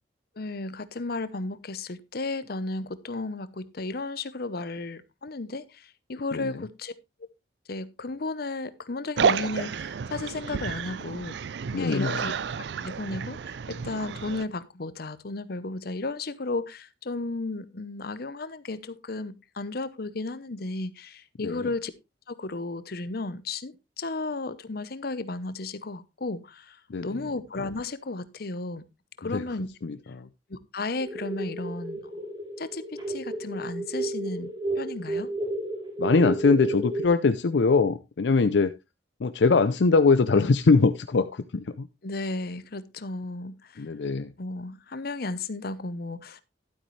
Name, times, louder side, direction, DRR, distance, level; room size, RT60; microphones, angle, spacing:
voice 1, 0.4-6.9 7.7-11.3 11.8-12.4 12.8-21.9 22.3-28.8 29.2-29.7 30.5-32.1 32.6-35.3 42.0-43.9 44.4-46.4, left 3 dB, 60° left, 0.8 m, -34 dB
sound 1, 9.2-14.4, right 6 dB, 70° right, 0.4 m, -30 dB
voice 2, 11.7-12.2 21.4-21.7 26.9-27.1 29.3-29.4 29.8-30.3 36.0-38.7 39.2-41.9 43.8-44.3, left 4 dB, 75° left, 0.5 m, -22 dB
sound 2, 31.0-37.1, right 2 dB, 25° right, 3.7 m, -32 dB
12.0 x 8.5 x 3.2 m
head